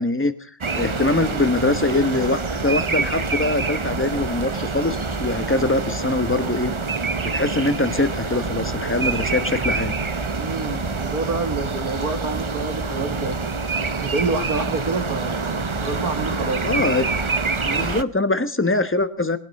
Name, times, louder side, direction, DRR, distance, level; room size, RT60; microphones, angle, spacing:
voice 1, 0.0-6.7 7.2-9.9 16.6-17.1 17.6-19.4, left 2 dB, 10° left, 11 dB, 1.0 m, -23 dB
sound 1, 0.6-18.0, right 4 dB, 30° right, 0.6 m, -26 dB
voice 2, 10.4-13.4 14.0-16.8, right 3 dB, 65° right, 7 dB, 2.6 m, -28 dB
21.0 x 10.5 x 6.6 m, 0.44 s
omnidirectional pair, 1.7 m